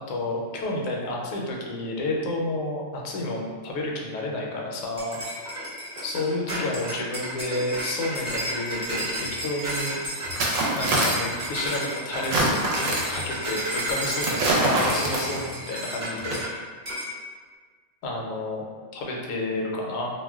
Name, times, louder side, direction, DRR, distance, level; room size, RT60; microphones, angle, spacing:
voice 1, 0.1-5.2 6.0-10.0 10.7-16.4 18.0-18.6 18.9-20.1, left 2 dB, 75° left, -1 dB, 0.9 m, -30 dB
sound 1, 5.0-16.5 16.9-17.1, right 1 dB, 40° right, 0.9 m, -32 dB
sound 2, 9.3-9.4 10.2-11.4 12.2-13.2 14.2-15.5 16.2-16.3, right 2 dB, 70° right, 0.9 m, -25 dB
2.4 x 2.1 x 3.4 m, 1.5 s
omnidirectional pair, 1.5 m